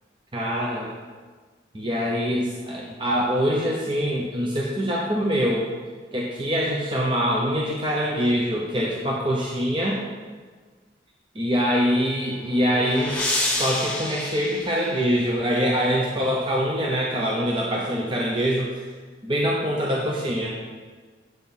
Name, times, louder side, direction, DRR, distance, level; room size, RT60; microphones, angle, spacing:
voice 1, 0.3-1.0 1.7-5.7 6.1-10.0 11.4-18.9 19.2-20.6, equal, 25° right, -3 dB, 0.7 m, -24 dB
sound 1, 12.2-15.5, left 2 dB, 10° left, 1.3 m, -29 dB
8.0 x 4.5 x 5.4 m, 1.4 s
head